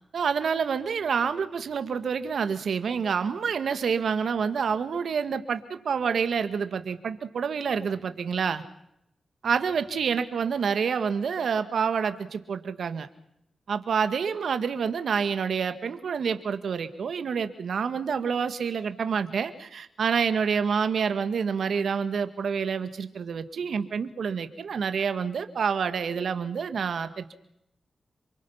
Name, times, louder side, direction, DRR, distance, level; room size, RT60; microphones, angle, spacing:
voice 1, 0.1-8.6 9.4-13.1 13.7-27.3, right 6 dB, 80° right, 10 dB, 1.8 m, -28 dB
28.0 x 24.0 x 5.8 m, 0.79 s
cardioid pair, 50°, 0 cm